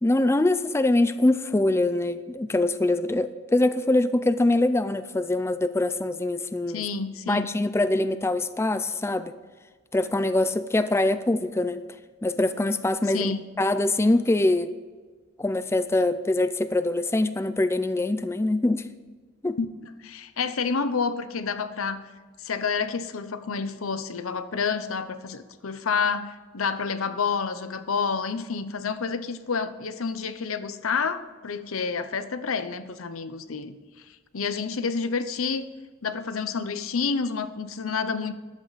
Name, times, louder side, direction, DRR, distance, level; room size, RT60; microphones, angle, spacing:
voice 1, 0.0-6.8 7.3-9.3 9.9-11.8 12.2-14.7 15.4-18.8 19.4-19.6, left 2 dB, 15° left, 12 dB, 0.4 m, -23 dB
voice 2, 6.7-7.5 13.1-13.5 19.6-19.7 20.0-22.0 22.4-33.8 34.3-35.6 36.0-38.4, left 5 dB, 90° left, 12 dB, 0.8 m, -29 dB
14.0 x 11.0 x 4.1 m, 1.4 s
head